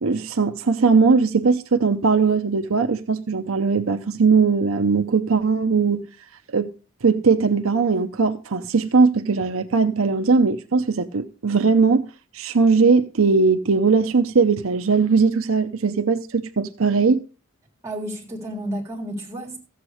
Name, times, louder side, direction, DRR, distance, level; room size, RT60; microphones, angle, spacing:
voice 1, 0.0-6.1 6.5-6.7 7.0-12.0 12.3-17.2, right 4 dB, 70° right, 0.7 m, -19 dB
voice 2, 17.8-19.6, right 1 dB, 15° right, 3.5 m, -31 dB
14.5 x 8.1 x 4.9 m
head